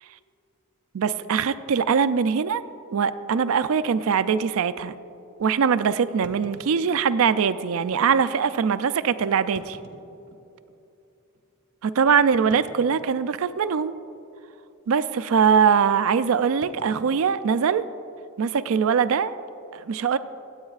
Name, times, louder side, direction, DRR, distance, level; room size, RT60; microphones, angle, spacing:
voice 1, 0.9-2.6 2.9-4.9 5.4-9.6 11.8-13.9 14.9-17.8 18.4-19.4 19.7-20.2, right 6 dB, 65° right, 13 dB, 0.4 m, -22 dB
sound 1, 1.6-1.7 2.4-2.5 2.8-2.9 3.5-3.6 6.2-7.4 8.3-8.4 9.4-10.8 11.3-11.4 12.5-13.6 13.9-14.2 14.5-14.8 16.6-18.2, right 1 dB, 50° right, 1.0 m, -50 dB
23.5 x 8.7 x 2.4 m, 2.8 s
head